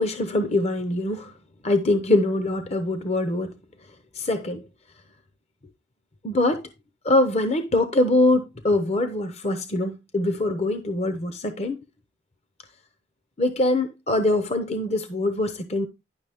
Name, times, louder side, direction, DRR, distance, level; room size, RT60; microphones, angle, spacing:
voice 1, 0.0-1.3 1.6-3.6 4.1-4.6 6.2-6.7 7.0-11.8 13.4-15.9, left 2 dB, 40° left, 0.7 m, -23 dB
10.5 x 6.1 x 3.4 m
head